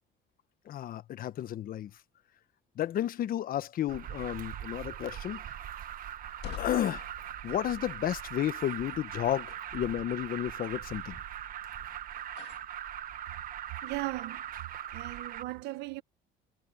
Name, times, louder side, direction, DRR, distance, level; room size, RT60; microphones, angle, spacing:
voice 1, 0.6-1.9 2.8-5.4 6.6-7.0 7.4-11.2, left 11 dB, 60° left, 1.1 m, -32 dB
Alarm, 3.9-15.4, right 10 dB, 55° right, 1.2 m, -41 dB
sound 1, 6.1-12.8, left 15 dB, 90° left, 1.8 m, -49 dB
voice 2, 13.8-14.4 14.9-16.0, right 18 dB, 90° right, 1.2 m, -37 dB
cardioid pair, 110°, 17 cm